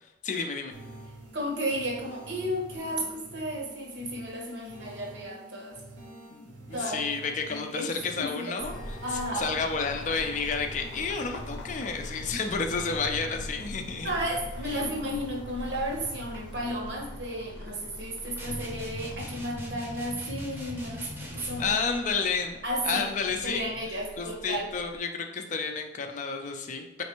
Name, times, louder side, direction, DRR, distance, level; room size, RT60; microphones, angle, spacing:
voice 1, 0.2-0.7 6.3-9.0 9.4-14.1 21.6-22.6 22.8-23.7 24.2-27.0, left 5 dB, 40° left, 4 dB, 0.4 m, -31 dB
sound 1, 0.7-16.7, right 1 dB, 90° right, 0.9 m, -48 dB
voice 2, 1.3-5.8 6.7-7.0 7.5-7.9 8.2-8.6 9.0-9.5 14.0-21.8 22.6-23.0 23.4-24.7, equal, 65° right, -1 dB, 1.0 m, -33 dB
sound 2, 8.6-25.0, left 1 dB, 85° left, 0.6 m, -43 dB
sound 3, 18.4-21.8, left 1 dB, 10° right, 0.7 m, -40 dB
4.3 x 3.2 x 3.0 m, 0.99 s
head